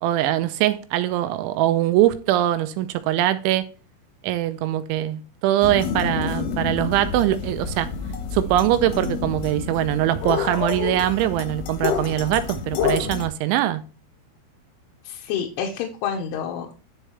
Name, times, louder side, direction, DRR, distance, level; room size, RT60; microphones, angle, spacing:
voice 1, 0.0-3.7 4.2-7.9 8.3-13.8, right 13 dB, 80° right, 2.9 m, -22 dB
sound 1, 5.6-13.3, left 6 dB, 65° left, 2.4 m, -28 dB
voice 2, 15.1-16.8, left 7 dB, 85° left, 3.4 m, -28 dB
11.0 x 4.9 x 3.1 m
omnidirectional pair, 5.5 m